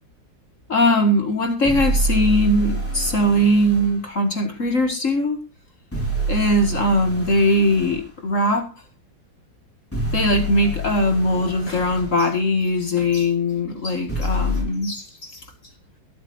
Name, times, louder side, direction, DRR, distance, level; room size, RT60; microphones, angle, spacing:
voice 1, 0.7-5.4 6.3-8.7 10.1-15.4, left 1 dB, 40° left, 5 dB, 2.2 m, -20 dB
sound 1, 1.6-3.9 5.9-8.0 9.9-12.1 14.1-14.6, right 1 dB, 5° left, 3.9 m, -26 dB
22.0 x 8.4 x 2.6 m, 0.28 s
omnidirectional pair, 2.1 m